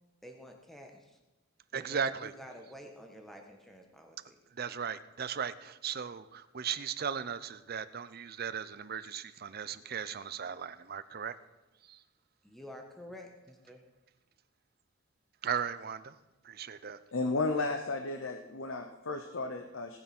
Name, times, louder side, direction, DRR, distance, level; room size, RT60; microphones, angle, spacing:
voice 1, 0.2-1.2 1.7-4.2 12.4-13.8, equal, ahead, 2 dB, 1.3 m, -50 dB
voice 2, 1.7-2.3 4.5-11.3 11.9-12.0 15.4-16.1 16.4-17.0, right 7 dB, 45° right, 14 dB, 0.6 m, -37 dB
voice 3, 17.1-20.0, left 3 dB, 65° left, 6 dB, 0.9 m, -33 dB
18.5 x 7.0 x 6.0 m, 1.1 s
head